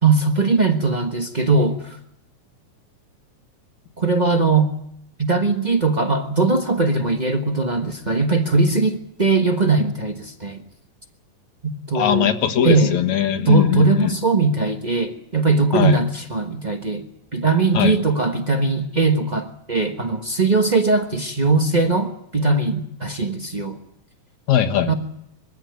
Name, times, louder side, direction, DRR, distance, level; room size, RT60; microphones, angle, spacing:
voice 1, 0.0-2.0 4.0-4.7 5.2-10.6 11.6-12.3 12.6-13.0 13.4-17.1 17.3-23.8 24.9-25.0, right 3 dB, 70° right, 6 dB, 0.4 m, -20 dB
voice 2, 11.9-14.1 15.7-16.0 17.7-18.0 24.5-25.0, left 10 dB, 75° left, 6 dB, 2.8 m, -20 dB
22.5 x 15.5 x 9.4 m, 0.74 s
omnidirectional pair, 3.4 m